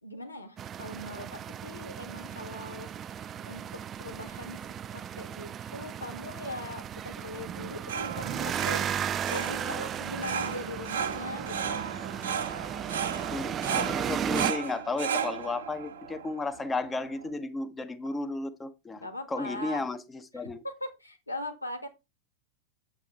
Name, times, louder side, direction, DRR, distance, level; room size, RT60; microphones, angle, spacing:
voice 1, 0.0-2.9 3.4-4.6 4.9-8.9 9.3-11.9 19.0-19.8 20.8-21.9, left 1 dB, 85° left, 1.8 m, -40 dB
sound 1, 0.6-14.5, right 9 dB, 25° right, 0.4 m, -35 dB
sound 2, 7.5-17.3, right 7 dB, 65° right, 1.2 m, -35 dB
voice 2, 13.3-20.6, left 3 dB, 15° left, 1.1 m, -34 dB
8.3 x 8.1 x 3.2 m
figure-of-eight pair, 90°, 0 cm